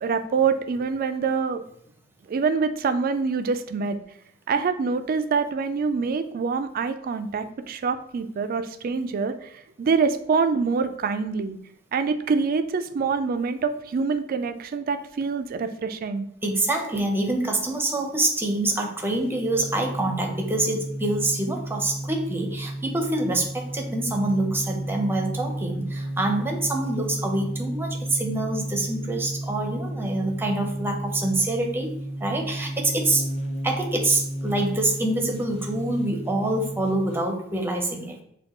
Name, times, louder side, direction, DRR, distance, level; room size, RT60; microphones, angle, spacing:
voice 1, 0.0-1.6 2.3-4.0 4.5-11.6 11.9-16.3, right 5 dB, 45° right, 9 dB, 0.3 m, -25 dB
voice 2, 16.4-31.9 32.2-33.2 33.6-38.2, right 2 dB, 10° right, 2 dB, 0.6 m, -26 dB
sound 1, 19.0-37.3, right 1 dB, 35° left, 0.5 m, -33 dB
6.4 x 2.3 x 2.9 m, 0.71 s
head